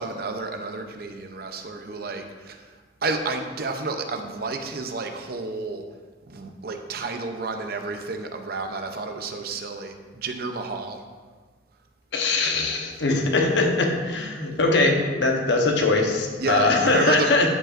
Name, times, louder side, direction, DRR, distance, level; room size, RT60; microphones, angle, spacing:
voice 1, 0.0-2.7 3.0-5.9 6.3-11.0 16.4-17.5, right 3 dB, 55° right, 5 dB, 0.6 m, -31 dB
voice 2, 12.1-17.5, left 3 dB, 75° left, 1 dB, 1.0 m, -21 dB
11.5 x 5.2 x 2.5 m, 1.4 s
head